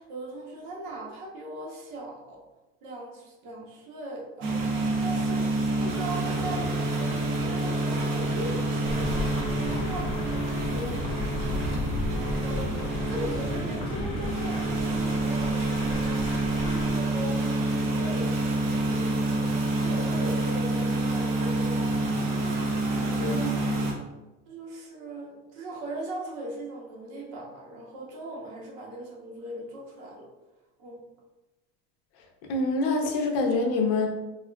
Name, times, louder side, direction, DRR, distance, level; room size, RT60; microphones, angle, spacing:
voice 1, 0.0-2.4 2.8-4.5 5.0-9.1 9.5-11.2 12.1-19.3 19.7-22.1 22.9-23.6 24.5-30.3 30.8-31.0, right 1 dB, 65° right, -2 dB, 0.9 m, -39 dB
sound 1, 4.4-23.9, right 2 dB, 45° right, 0.6 m, -27 dB
sound 2, 8.8-16.9, left 2 dB, 20° left, 0.4 m, -35 dB
voice 2, 23.1-23.8 32.5-34.1, left 3 dB, 80° left, 2 dB, 0.6 m, -26 dB
3.5 x 2.4 x 2.2 m, 1.1 s
cardioid pair, 175°, 30 cm